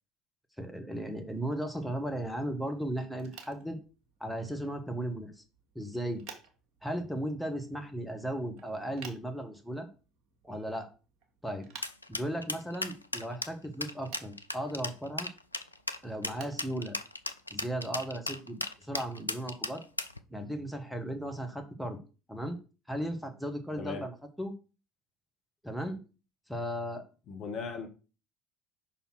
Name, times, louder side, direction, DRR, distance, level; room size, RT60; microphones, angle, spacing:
voice 1, 0.6-3.8 4.2-5.4 5.7-6.2 6.8-9.9 10.4-10.9 11.4-11.7 12.1-15.3 16.0-17.0 17.5-19.8 20.3-22.0 22.3-22.6 22.9-24.5 25.6-26.0 26.5-27.0, right 1 dB, ahead, 1.4 m, -36 dB
sound 1, 3.1-20.4, right 5 dB, 50° right, 1.6 m, -56 dB
sound 2, 11.8-20.2, left 2 dB, 85° left, 0.4 m, -36 dB
voice 2, 23.8-24.1 27.3-27.9, left 5 dB, 45° left, 1.1 m, -38 dB
5.5 x 4.3 x 6.0 m
figure-of-eight pair, 65°, 0 cm